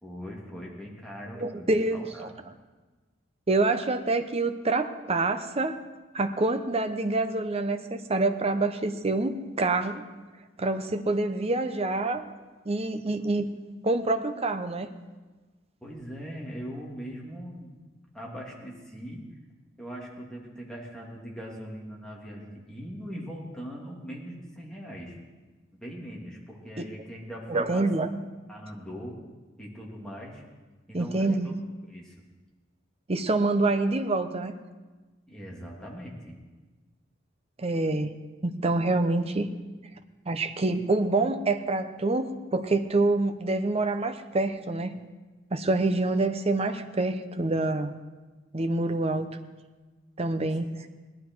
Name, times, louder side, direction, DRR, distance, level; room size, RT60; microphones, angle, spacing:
voice 1, 0.0-2.3 15.8-17.8 18.1-19.2 19.8-25.2 25.8-27.9 28.5-29.2 29.6-30.4 30.9-31.5 31.9-32.1 35.3-36.4, equal, 5° left, -4 dB, 2.7 m, -40 dB
voice 2, 1.4-2.0 3.5-5.8 6.1-10.0 10.6-12.3 12.7-13.5 13.8-14.9 26.8-26.9 27.5-28.1 30.9-31.5 33.1-34.5 37.6-38.1 38.4-39.5 40.3-45.0 45.5-47.9 48.5-49.3 50.2-50.6, right 2 dB, 35° right, 8 dB, 0.8 m, -26 dB
18.0 x 11.5 x 4.6 m, 1.3 s
head